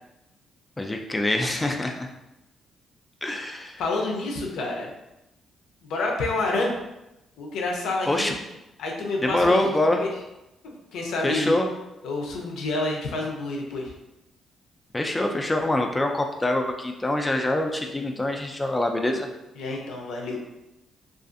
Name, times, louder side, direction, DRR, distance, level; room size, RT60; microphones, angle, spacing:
voice 1, 0.8-2.1 3.2-3.8 8.1-8.4 9.2-10.0 11.2-11.7 14.9-19.3, left 1 dB, 15° left, 3 dB, 0.3 m, -24 dB
voice 2, 3.8-4.9 5.9-6.8 7.4-8.3 8.8-9.6 10.0-10.1 10.9-11.5 12.0-13.9 19.6-20.4, left 2 dB, 80° left, 0 dB, 0.5 m, -28 dB
2.5 x 2.4 x 2.5 m, 0.92 s
cardioid pair, 90°, 0 cm